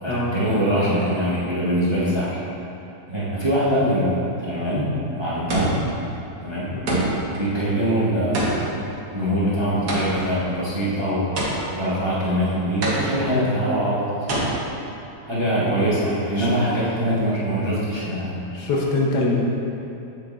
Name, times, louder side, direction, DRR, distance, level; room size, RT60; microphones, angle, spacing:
voice 1, 0.0-2.4 3.1-5.7 6.4-6.7 7.3-11.3 11.7-14.0 14.3-14.6 15.2-18.5, equal, 20° right, -9 dB, 0.9 m, -23 dB
sound 1, 4.5-4.9 5.5-6.0 6.9-7.4 8.3-10.4 11.4-11.9 12.8-13.4 14.3-14.4, right 2 dB, 70° right, 1.7 m, -25 dB
voice 2, 18.5-19.4, left 2 dB, 80° left, -2 dB, 1.5 m, -24 dB
7.6 x 7.0 x 2.5 m, 2.7 s
omnidirectional pair, 1.8 m